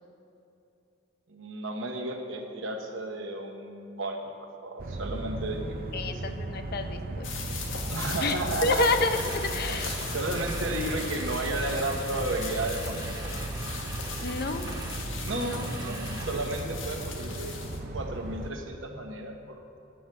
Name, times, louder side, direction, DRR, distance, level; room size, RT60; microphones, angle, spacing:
voice 1, 1.3-4.2 4.6-6.2 7.9-8.9 9.7-13.1 15.2-17.6 17.9-19.6, right 2 dB, 75° right, 3 dB, 1.2 m, -33 dB
sound 1, 4.8-18.5, right 2 dB, 50° right, 0.6 m, -36 dB
voice 2, 5.9-7.3 8.2-9.9 14.2-14.7 15.3-15.6, left 2 dB, 55° left, 8 dB, 0.6 m, -29 dB
sound 2, 7.2-17.8, left 5 dB, 80° left, 1.2 m, -39 dB
sound 3, 9.0-16.6, right 2 dB, 20° right, 1.0 m, -42 dB
9.1 x 6.7 x 7.5 m, 2.9 s
head